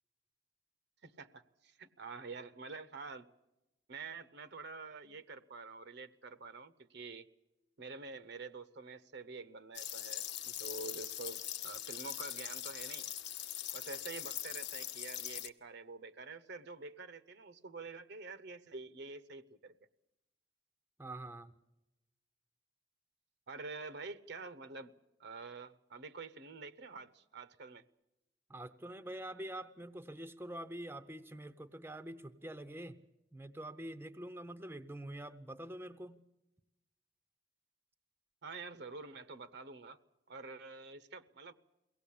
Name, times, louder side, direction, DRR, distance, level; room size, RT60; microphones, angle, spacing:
voice 1, 1.0-3.3 3.9-7.3 7.8-13.1 13.7-19.7 23.5-24.9 25.2-27.8 38.4-40.0 40.3-41.5, right 4 dB, 60° right, 14 dB, 0.9 m, -47 dB
sound 1, 9.7-15.5, left 11 dB, 60° left, 0.9 m, -42 dB
voice 2, 21.0-21.5 28.5-33.0 33.3-36.2, right 1 dB, 10° right, 11 dB, 0.7 m, -45 dB
23.0 x 17.5 x 8.5 m, 0.97 s
head